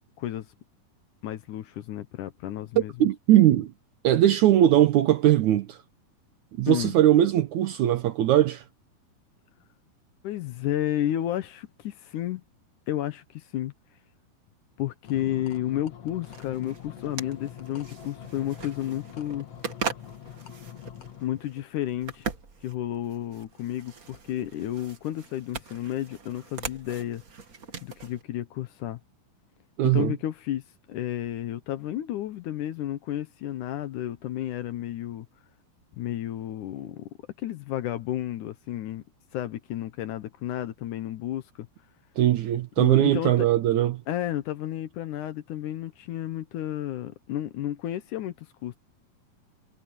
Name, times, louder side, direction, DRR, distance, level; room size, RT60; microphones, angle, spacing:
voice 1, 1.2-2.9 6.7-6.9 10.2-12.4 12.9-13.7 14.8-19.5 21.2-22.3 22.6-27.2 27.8-29.0 29.9-30.6 30.9-35.3 36.0-37.1 37.4-39.0 39.3-41.7 42.8-43.5 44.1-48.8, left 12 dB, 70° left, 2.1 m, -32 dB
voice 2, 2.8-3.7 4.0-5.8 6.6-8.6 29.8-30.1 42.2-44.0, right 12 dB, 70° right, 1.9 m, -20 dB
sound 1, 15.0-21.2, left 9 dB, 55° left, 2.2 m, -44 dB
sound 2, 16.2-28.2, right 5 dB, 40° right, 1.3 m, -40 dB
omnidirectional pair, 4.2 m